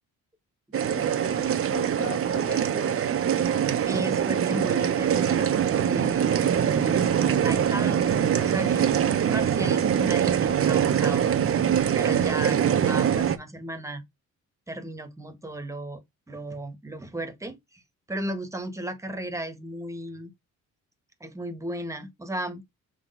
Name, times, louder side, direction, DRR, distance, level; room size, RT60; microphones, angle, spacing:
sound 1, 0.7-13.4, right 8 dB, 45° right, 1.0 m, -23 dB
voice 1, 0.9-3.0, left 4 dB, 40° left, 2.7 m, -39 dB
voice 2, 3.9-8.1 8.4-8.9 9.3-11.2 11.9-14.0 14.7-16.0 16.3-17.8 18.1-20.3 21.2-22.6, right 1 dB, 10° right, 1.4 m, -35 dB
6.3 x 3.3 x 5.3 m
cardioid pair, 115°, 31 cm